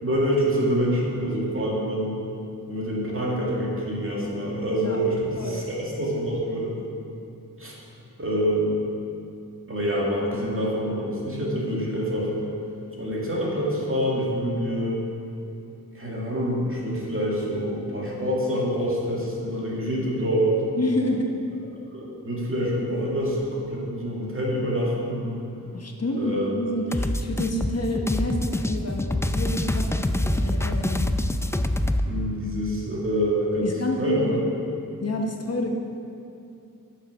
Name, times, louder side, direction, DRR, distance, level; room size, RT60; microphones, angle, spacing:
voice 1, 0.0-2.2 2.7-6.7 7.6-7.7 8.2-8.8 9.7-12.3 13.0-15.0 15.9-20.6 21.9-25.4 26.2-26.6 32.1-34.4, equal, 40° right, -4 dB, 2.1 m, -26 dB
voice 2, 20.8-21.3 25.7-31.1 33.6-34.4 35.0-35.7, left 1 dB, 45° left, 1 dB, 1.0 m, -28 dB
sound 1, 26.9-32.1, left 1 dB, 10° left, 0.3 m, -25 dB
8.3 x 6.5 x 6.0 m, 2.6 s
wide cardioid pair, 80°, 34 cm